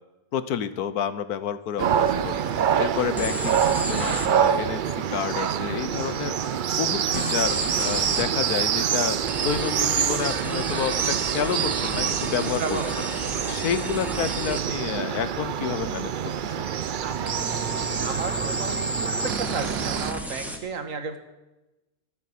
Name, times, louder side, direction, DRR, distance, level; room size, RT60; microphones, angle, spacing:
voice 1, 0.3-2.3 2.8-6.4 6.7-12.8 13.5-16.1 16.6-16.7, left 8 dB, 85° left, 13 dB, 1.4 m, -29 dB
sound 1, 1.8-20.1, right 8 dB, 80° right, 0.4 m, -26 dB
voice 2, 2.1-2.9 12.5-13.8 17.0-21.2, right 4 dB, 60° right, 8 dB, 1.8 m, -35 dB
sound 2, 3.2-4.3 7.1-8.3 9.3-14.6 17.3-20.6, equal, ahead, 1.5 m, -33 dB
15.0 x 9.2 x 8.6 m, 1.0 s
omnidirectional pair, 1.6 m